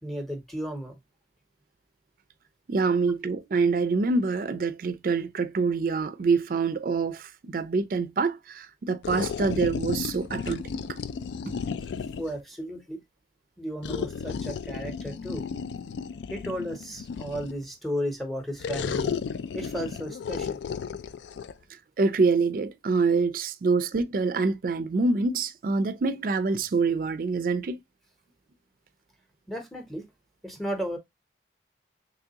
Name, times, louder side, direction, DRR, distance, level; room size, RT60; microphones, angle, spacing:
voice 1, 0.0-1.0 12.2-13.0 13.6-15.5 16.3-19.2 19.5-20.6 29.5-30.1 30.4-31.0, equal, ahead, 0.8 m, -34 dB
voice 2, 2.7-10.6 22.0-27.8, right 4 dB, 50° right, 0.4 m, -26 dB
sound 1, 9.0-12.4 13.8-17.6 18.6-21.5, left 6 dB, 85° left, 0.3 m, -33 dB
3.5 x 3.0 x 2.7 m
head